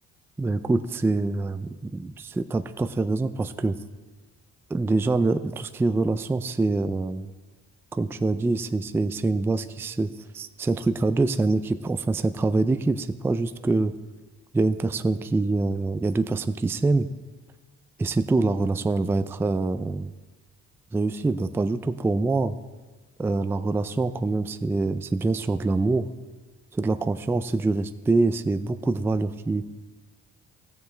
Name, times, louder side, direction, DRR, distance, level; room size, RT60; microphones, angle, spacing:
voice 1, 0.4-3.8 4.7-7.3 7.9-10.1 10.3-13.9 14.5-17.1 18.0-20.1 20.9-22.6 23.2-26.1 26.7-29.6, right 3 dB, 10° right, 10 dB, 0.3 m, -25 dB
15.0 x 7.0 x 3.3 m, 1.3 s
cardioid pair, 90°, 30 cm